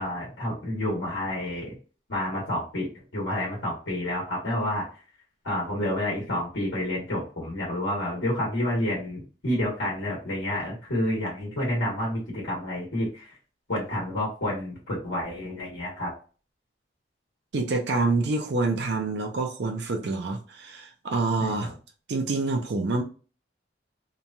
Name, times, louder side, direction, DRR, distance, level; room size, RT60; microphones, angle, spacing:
voice 1, 0.0-1.7 2.1-4.9 5.4-13.4 13.7-16.1 21.4-21.7, left 1 dB, 85° left, 1.2 m, -29 dB
voice 2, 17.5-21.7 22.1-23.0, right 3 dB, 65° right, 0.5 m, -27 dB
3.0 x 2.2 x 2.5 m
head